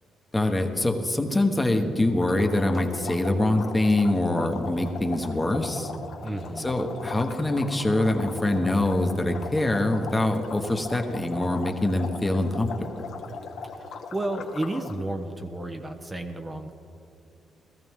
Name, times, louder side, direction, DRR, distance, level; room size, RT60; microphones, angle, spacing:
voice 1, 0.3-5.9 6.6-12.9, left 1 dB, 15° left, 5 dB, 1.2 m, -24 dB
sound 1, 2.2-15.0, left 5 dB, 70° left, 1.3 m, -39 dB
voice 2, 6.2-6.7 13.7-16.7, right 1 dB, 20° right, 5 dB, 0.9 m, -32 dB
17.5 x 13.5 x 3.7 m, 2.6 s
cardioid pair, 90°, 0 cm